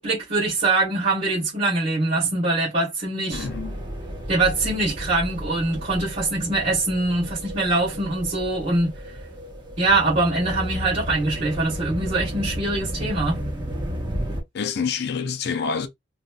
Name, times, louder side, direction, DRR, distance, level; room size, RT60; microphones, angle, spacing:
voice 1, 0.0-3.5 4.3-9.2 9.8-13.4, right 2 dB, 45° right, 1.3 m, -23 dB
voice 2, 3.3-3.7 14.5-15.9, left 6 dB, 60° left, 0.4 m, -27 dB
sound 1, 3.3-14.4, equal, 25° right, 0.8 m, -33 dB
3.1 x 2.6 x 2.2 m
head